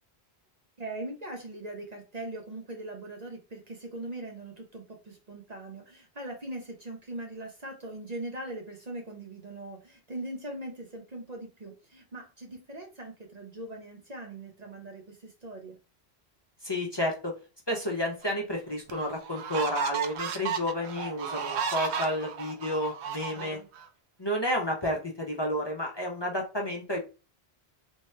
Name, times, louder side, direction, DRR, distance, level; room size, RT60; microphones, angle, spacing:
voice 1, 0.8-15.8 23.3-23.7, right 2 dB, 40° right, 2 dB, 0.9 m, -41 dB
voice 2, 16.6-17.3 17.7-23.6 24.2-27.0, equal, 25° left, -1 dB, 0.8 m, -31 dB
sound 1, 18.2-18.3 18.9-23.9, right 7 dB, 90° right, 0.9 m, -34 dB
3.5 x 3.0 x 3.2 m, 0.31 s
omnidirectional pair, 1.1 m